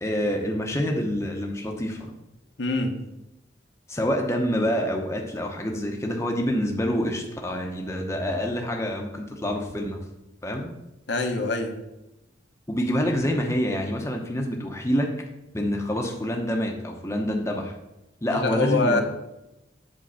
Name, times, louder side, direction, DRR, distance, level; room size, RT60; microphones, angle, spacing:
voice 1, 0.0-2.1 3.9-10.0 10.4-10.7 12.7-15.1 15.5-17.7 18.2-19.0, equal, 15° left, 1 dB, 0.8 m, -27 dB
voice 2, 2.6-2.9 11.1-11.7 18.3-19.0, left 3 dB, 65° left, 4 dB, 1.0 m, -24 dB
7.7 x 4.5 x 5.8 m, 0.93 s
head